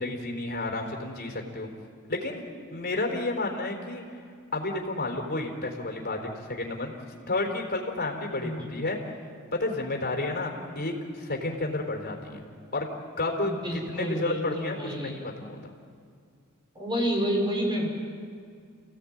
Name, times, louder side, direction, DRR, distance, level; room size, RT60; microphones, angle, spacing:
voice 1, 0.0-1.7 2.1-2.4 2.7-4.0 4.5-7.0 7.3-9.0 9.5-12.4 12.7-12.9 13.2-15.7, left 2 dB, 45° left, 1 dB, 3.9 m, -31 dB
voice 2, 8.4-8.7 13.4-15.2 16.7-17.9, equal, 20° right, -1 dB, 6.1 m, -29 dB
29.0 x 17.0 x 8.9 m, 2.2 s
head